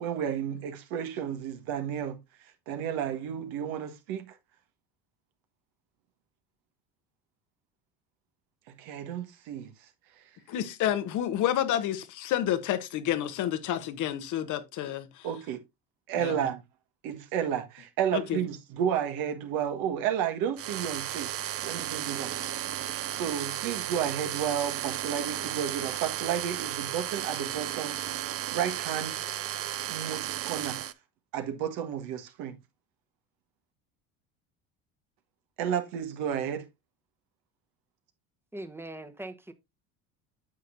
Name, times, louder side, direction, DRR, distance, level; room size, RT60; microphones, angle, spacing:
voice 1, 0.0-2.2 2.7-4.3 8.7-9.7 15.2-15.6 16.1-16.6 17.0-21.3 21.6-22.3 23.1-28.0 28.5-29.2 29.9-30.8 31.3-32.6 35.6-36.6, right 9 dB, 70° right, 1.6 m, -32 dB
voice 2, 10.5-15.3 16.2-16.5 18.1-18.4, left 11 dB, 55° left, 1.1 m, -29 dB
sound 1, 20.6-30.9, right 12 dB, 40° right, 0.6 m, -34 dB
voice 3, 38.5-39.5, right 1 dB, 5° right, 1.1 m, -41 dB
9.5 x 6.4 x 2.6 m
supercardioid pair, 85°, 36 cm